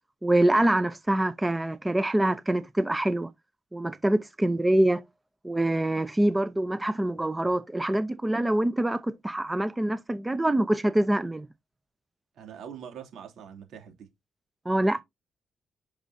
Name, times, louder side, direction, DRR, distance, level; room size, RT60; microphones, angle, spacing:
voice 1, 0.2-3.3 3.7-5.0 5.4-11.5 14.7-15.0, right 1 dB, 15° right, 0.7 m, -25 dB
voice 2, 12.3-14.1, right 8 dB, 80° right, 3.0 m, -43 dB
9.9 x 6.3 x 2.7 m
cardioid pair, 90°, 0 cm